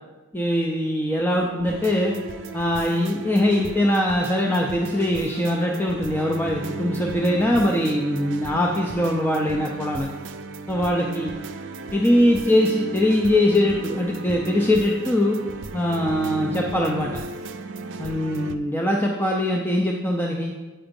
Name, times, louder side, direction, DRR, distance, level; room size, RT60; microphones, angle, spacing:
voice 1, 0.3-2.1 2.5-10.1 10.7-11.3 11.9-15.4 15.7-17.2 18.0-20.5, left 1 dB, 10° left, -1 dB, 0.5 m, -22 dB
sound 1, 1.7-18.5, right 3 dB, 60° right, 0.5 m, -35 dB
8.8 x 4.9 x 5.2 m, 1.3 s
head